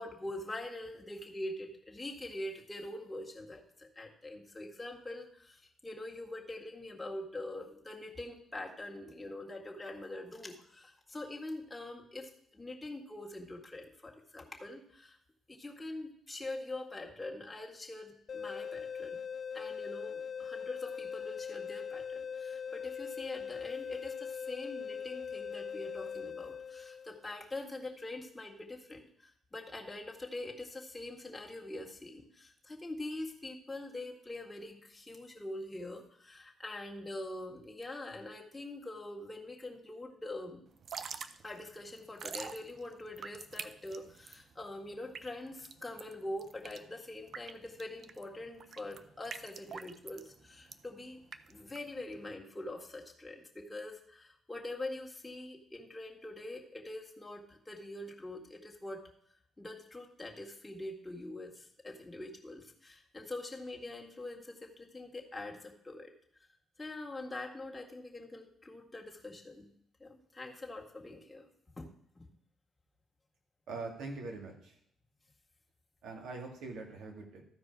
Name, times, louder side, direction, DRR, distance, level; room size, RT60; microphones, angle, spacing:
voice 1, 0.0-15.2 15.5-19.2 19.5-40.6 41.4-51.2 51.5-59.1 59.6-66.1 66.8-69.7 70.0-71.5 71.7-71.9, left 2 dB, 15° left, 0 dB, 1.9 m, -44 dB
sound 1, 18.3-27.2, left 6 dB, 45° left, 0.3 m, -41 dB
Drip / Trickle dribble, 40.7-52.3, right 6 dB, 55° right, 0.6 m, -47 dB
voice 2, 73.7-74.7 76.0-77.4, right 3 dB, 80° right, 2 dB, 2.3 m, -43 dB
13.5 x 4.9 x 4.8 m, 0.69 s
cardioid pair, 90°, 0 cm